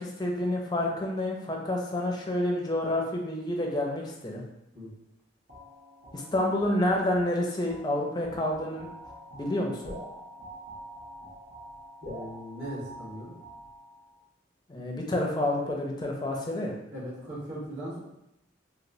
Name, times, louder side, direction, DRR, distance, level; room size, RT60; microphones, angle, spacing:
voice 1, 0.0-4.4 6.1-8.9 9.3-9.9 14.7-16.8, left 1 dB, 20° left, 0 dB, 0.4 m, -29 dB
sound 1, 5.5-14.2, equal, 80° right, 1.0 m, -46 dB
voice 2, 12.0-13.3 16.9-18.0, equal, 45° right, -7 dB, 1.3 m, -39 dB
3.0 x 2.7 x 2.6 m, 0.85 s
head